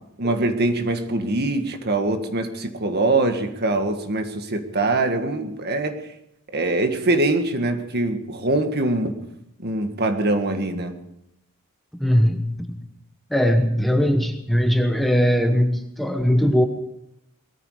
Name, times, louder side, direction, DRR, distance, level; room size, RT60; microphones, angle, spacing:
voice 1, 0.2-6.0 6.5-9.1 9.6-11.0, right 2 dB, 50° right, 6 dB, 1.8 m, -23 dB
voice 2, 12.0-12.7 13.3-16.6, equal, ahead, 5 dB, 1.1 m, -20 dB
21.0 x 14.0 x 5.0 m, 0.78 s
head